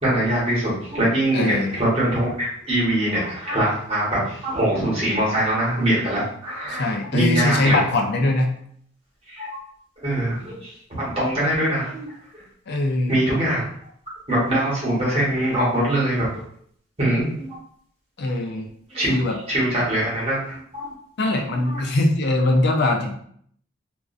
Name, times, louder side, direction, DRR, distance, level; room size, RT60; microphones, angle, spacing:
voice 1, 0.0-7.8 9.3-9.6 10.0-12.1 12.3-12.4 13.1-13.6 14.3-16.3 17.0-17.5 18.9-19.2 19.5-20.9 21.6-21.8, right 1 dB, 30° right, -7 dB, 1.0 m, -23 dB
voice 2, 1.3-1.8 6.7-8.5 12.7-13.1 18.2-18.7 19.1-19.4 21.2-23.1, left 2 dB, 55° left, 3 dB, 0.4 m, -21 dB
2.4 x 2.1 x 2.5 m, 0.64 s
head